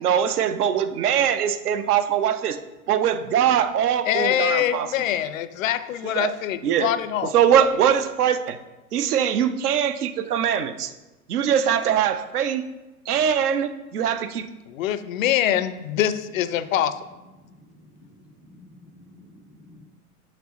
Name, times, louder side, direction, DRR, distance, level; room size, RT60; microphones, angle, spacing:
voice 1, 0.0-2.6 2.9-4.9 6.0-6.3 6.6-6.9 7.3-8.6 8.9-10.9 11.3-12.6 13.1-14.5, right 9 dB, 75° right, 10 dB, 0.7 m, -22 dB
voice 2, 4.0-7.3 14.7-17.0, left 11 dB, 60° left, 13 dB, 0.5 m, -24 dB
voice 3, 17.8-18.2 18.5-19.8, left 1 dB, 5° right, 2 dB, 0.5 m, -50 dB
6.7 x 6.0 x 2.9 m, 1.1 s
hypercardioid pair, 100°, 46 cm